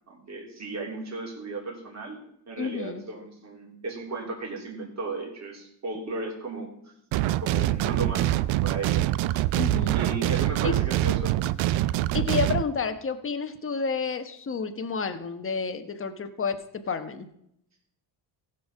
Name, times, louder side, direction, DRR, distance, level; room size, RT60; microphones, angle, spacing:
voice 1, 0.1-2.2 2.5-6.7 7.4-9.5 9.9-11.4, right 3 dB, 35° right, -1 dB, 3.3 m, -35 dB
voice 2, 2.6-3.0 9.5-9.9 10.6-10.7 12.1-16.6 16.9-17.3, left 5 dB, 30° left, 9 dB, 1.1 m, -30 dB
sound 1, 7.1-12.6, right 15 dB, 80° right, 0.6 m, -25 dB
15.5 x 5.6 x 5.5 m, 0.75 s
cardioid pair, 95°, 45 cm